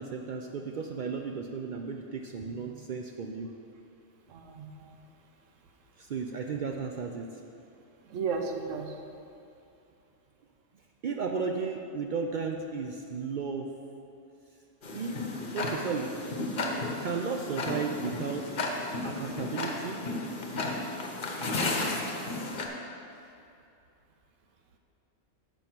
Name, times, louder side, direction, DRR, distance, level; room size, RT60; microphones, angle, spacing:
voice 1, 0.0-3.5 6.0-7.3 11.0-13.7 14.9-15.2 15.5-16.1 17.0-18.5 19.0-20.1, right 5 dB, 65° right, 2 dB, 0.4 m, -34 dB
voice 2, 4.3-5.0 8.1-8.9 21.4-21.9, right 5 dB, 90° right, 4 dB, 1.1 m, -35 dB
Tick-tock, 14.8-22.7, left 2 dB, 45° left, 0.9 m, -33 dB
7.0 x 5.4 x 6.0 m, 2.6 s
omnidirectional pair, 1.3 m